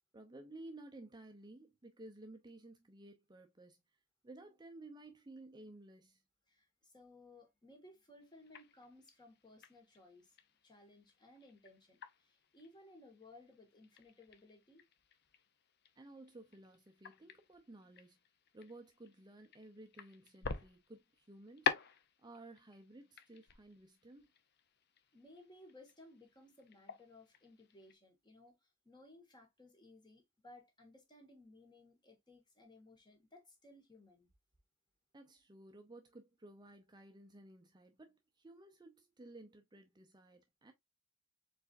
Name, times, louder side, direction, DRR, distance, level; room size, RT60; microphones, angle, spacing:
voice 1, 0.1-3.8 4.2-6.2 16.0-18.2 18.5-21.7 22.2-24.3 35.1-40.7, right 2 dB, 20° right, 0.6 m, -55 dB
voice 2, 6.5-10.4 10.6-14.8 25.1-34.3, left 2 dB, 20° left, 1.6 m, -60 dB
sound 1, 8.2-27.9, left 6 dB, 50° left, 0.6 m, -47 dB
4.7 x 4.1 x 2.5 m
head